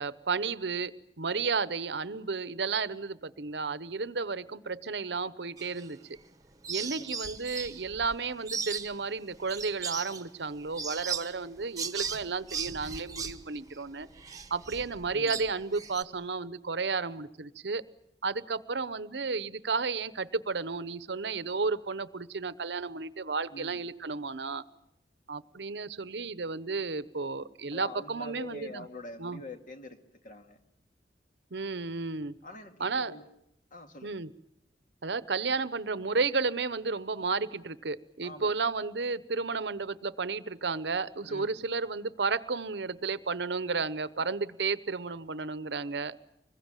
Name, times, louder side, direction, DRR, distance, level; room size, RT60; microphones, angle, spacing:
voice 1, 0.0-6.0 6.7-14.1 14.5-17.8 18.2-24.6 25.3-28.9 29.2-29.4 31.5-32.3 32.8-33.1 34.0-34.3 35.0-46.2, right 4 dB, 70° right, 15 dB, 0.9 m, -32 dB
sound 1, 5.6-6.3 6.6-16.0, right 6 dB, 20° right, 1.2 m, -38 dB
voice 2, 6.8-7.2 15.1-15.4 23.5-23.8 27.7-30.0 30.2-30.6 32.4-33.2 33.7-34.2 38.2-38.5 41.3-41.6, left 2 dB, 50° left, 5 dB, 2.3 m, -45 dB
25.0 x 21.5 x 9.1 m, 0.80 s
head